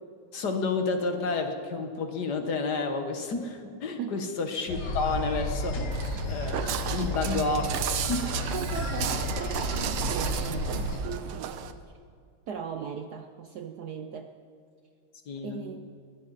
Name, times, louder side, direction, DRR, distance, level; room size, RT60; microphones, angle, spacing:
voice 1, 0.3-5.9 6.3-6.6 6.9-7.8 8.1-8.4 15.3-15.9, left 3 dB, 55° left, 6 dB, 1.6 m, -30 dB
sound 1, 4.7-11.0, left 1 dB, 75° left, 2.5 m, -32 dB
Walk footsteps, 5.9-11.7, right 9 dB, 80° right, 1.7 m, -34 dB
voice 2, 7.0-7.3 8.5-11.6 12.5-14.4 15.4-15.9, right 7 dB, 65° right, 6 dB, 1.0 m, -38 dB
21.0 x 15.5 x 4.1 m, 2.3 s
omnidirectional pair, 2.4 m